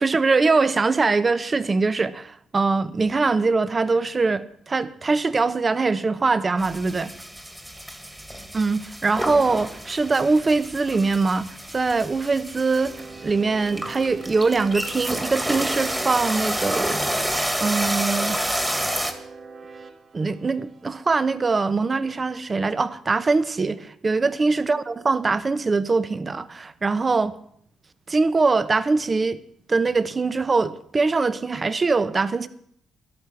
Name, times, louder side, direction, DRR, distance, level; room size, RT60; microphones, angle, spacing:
voice 1, 0.0-7.1 8.5-17.0 17.6-18.4 20.1-27.3 28.1-29.4 29.7-32.5, right 4 dB, 30° right, 0.9 m, -22 dB
sound 1, 6.6-19.1, right 1 dB, 10° right, 1.8 m, -29 dB
sound 2, 12.8-21.8, right 4 dB, 50° right, 1.8 m, -43 dB
13.0 x 11.5 x 5.9 m
cardioid pair, 90°, 0 cm